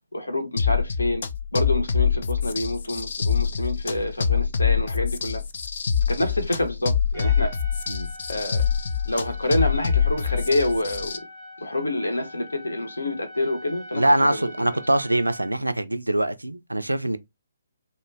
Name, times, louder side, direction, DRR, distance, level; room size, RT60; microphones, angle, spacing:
voice 1, 0.1-1.2 1.5-5.4 6.1-7.5 8.3-8.6 9.1-11.2 11.6-14.4 14.7-14.8, left 1 dB, 75° left, 0.7 m, -27 dB
sound 1, 0.6-11.2, left 7 dB, 50° left, 0.3 m, -25 dB
Trumpet, 7.1-15.6, equal, 5° left, 0.7 m, -43 dB
voice 2, 13.9-17.2, right 1 dB, 80° right, 0.3 m, -23 dB
2.2 x 2.1 x 3.2 m
figure-of-eight pair, 135°, 0 cm